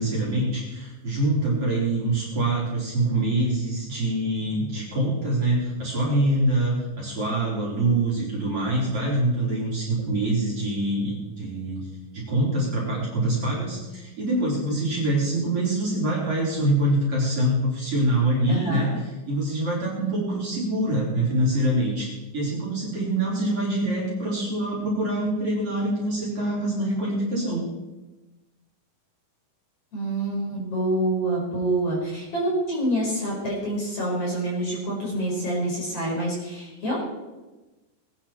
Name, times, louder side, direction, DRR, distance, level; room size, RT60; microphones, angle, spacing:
voice 1, 0.0-11.9 12.1-27.7, right 1 dB, 40° right, -5 dB, 4.7 m, -25 dB
voice 2, 18.5-19.0 29.9-37.0, right 1 dB, 40° left, -4 dB, 5.6 m, -27 dB
20.0 x 10.5 x 4.5 m, 1.1 s
omnidirectional pair, 4.4 m